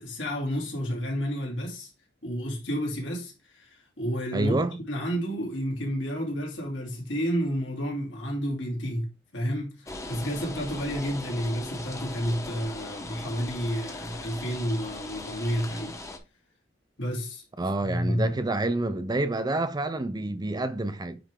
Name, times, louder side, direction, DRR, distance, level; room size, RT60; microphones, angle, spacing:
voice 1, 0.0-1.9 2.2-16.0 17.0-17.4 17.8-18.3, equal, 70° left, 2.6 m, -31 dB
voice 2, 4.3-4.8 17.6-21.2, right 2 dB, 20° right, 0.5 m, -28 dB
sound 1, 9.9-16.2, left 2 dB, 15° left, 1.0 m, -39 dB
9.6 x 3.4 x 3.7 m
head